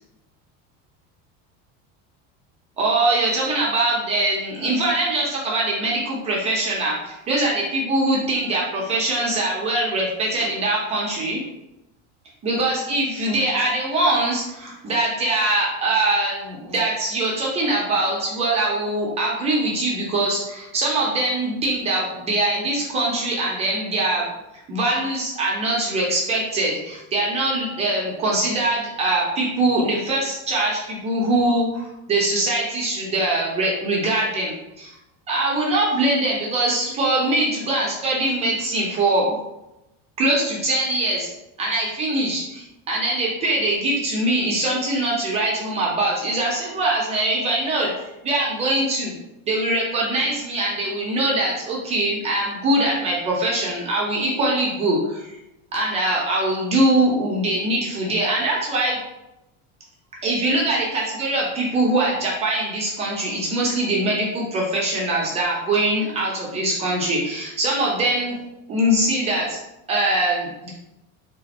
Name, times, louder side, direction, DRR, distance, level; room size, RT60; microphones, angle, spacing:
voice 1, 2.8-11.4 12.4-24.3 24.7-34.9 35.3-39.3 40.2-41.3 41.6-47.9 48.2-49.1 49.5-55.3 55.7-59.0 60.2-68.4 68.7-69.6 69.9-70.7, right 1 dB, 20° right, -3 dB, 0.5 m, -22 dB
3.4 x 2.5 x 4.0 m, 0.92 s
cardioid pair, 180°, 32 cm